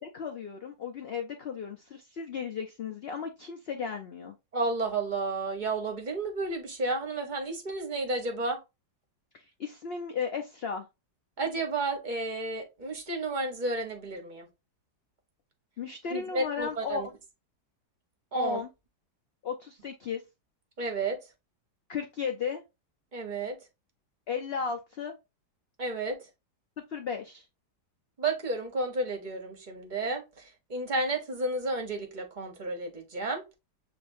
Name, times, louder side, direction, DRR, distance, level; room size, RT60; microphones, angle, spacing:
voice 1, 0.0-4.3 9.3-10.8 15.8-17.0 18.3-18.7 19.4-20.2 21.9-22.6 24.3-25.2 26.9-27.4, left 6 dB, 75° left, 0.5 m, -35 dB
voice 2, 4.5-8.6 11.4-14.5 16.1-17.1 18.3-18.6 20.8-21.2 23.1-23.6 25.8-26.2 28.2-33.4, right 2 dB, 35° right, 0.8 m, -32 dB
6.8 x 2.6 x 2.5 m
omnidirectional pair, 1.8 m